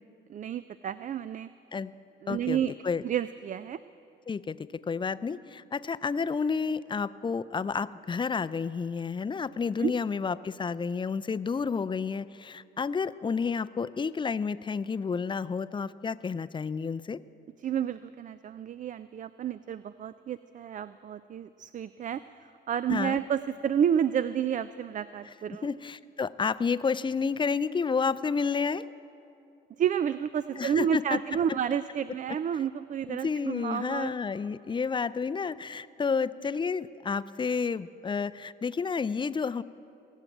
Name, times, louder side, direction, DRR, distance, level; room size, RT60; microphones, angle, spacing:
voice 1, 0.3-1.5 2.2-2.7 3.0-3.8 9.8-9.9 17.6-25.7 29.8-34.1, right 9 dB, 40° right, 14 dB, 0.4 m, -30 dB
voice 2, 2.3-2.6 2.8-3.0 4.3-4.6 4.9-17.2 22.9-23.2 25.6-28.8 30.6-31.2 33.1-39.6, left 5 dB, 25° left, 16 dB, 0.4 m, -30 dB
21.0 x 7.3 x 9.1 m, 2.7 s
cardioid pair, 90°, 20 cm